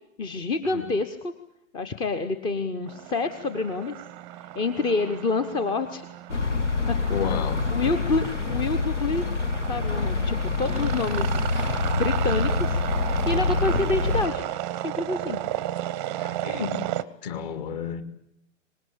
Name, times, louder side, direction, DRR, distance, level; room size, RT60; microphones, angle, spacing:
voice 1, 0.2-1.3 1.7-3.9 4.5-6.1 6.9-7.0 7.7-9.2 9.7-11.3 11.9-12.8 13.3-14.5 14.8-15.4, left 3 dB, 10° left, 10 dB, 1.0 m, -27 dB
sound 1, 2.9-17.0, right 13 dB, 20° right, 0.9 m, -34 dB
sound 2, 6.3-14.3, left 4 dB, 70° left, 2.3 m, -26 dB
voice 2, 7.1-7.8 16.2-16.8 17.2-18.0, left 7 dB, 35° left, 8 dB, 2.8 m, -31 dB
25.0 x 20.0 x 8.6 m, 0.78 s
figure-of-eight pair, 120°, 38 cm